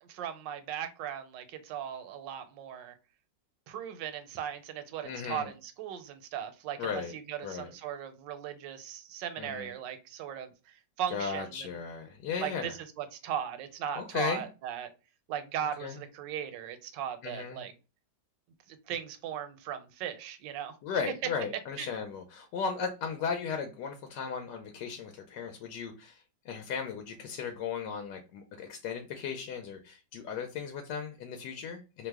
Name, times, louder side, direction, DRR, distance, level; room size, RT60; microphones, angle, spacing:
voice 1, 0.0-2.9 3.7-11.7 12.4-12.7 13.0-14.9 15.3-17.7 18.7-20.8 21.8-21.9, right 9 dB, 85° right, 9 dB, 1.3 m, -38 dB
voice 2, 5.0-5.5 6.8-7.1 7.4-7.7 9.4-9.7 11.1-12.7 14.0-14.5 15.8-16.0 17.2-17.6 20.8-32.1, left 6 dB, 80° left, 5 dB, 1.2 m, -36 dB
3.0 x 2.0 x 3.4 m, 0.30 s
omnidirectional pair, 1.9 m